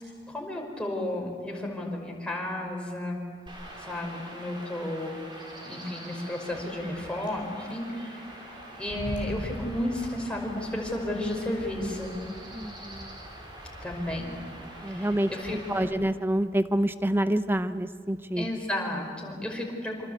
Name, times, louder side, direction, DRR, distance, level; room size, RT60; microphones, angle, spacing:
voice 1, 0.3-3.2 3.8-5.2 5.6-12.2 13.8-14.4 14.9-15.8 18.4-20.1, left 1 dB, 5° left, 0 dB, 5.2 m, -33 dB
Chirp tweet / Wind / Stream, 3.5-15.9, right 1 dB, 30° right, 6.2 m, -42 dB
voice 2, 12.5-13.2 14.8-18.5, right 1 dB, 10° right, 11 dB, 0.8 m, -27 dB
27.5 x 26.0 x 8.2 m, 2.1 s
head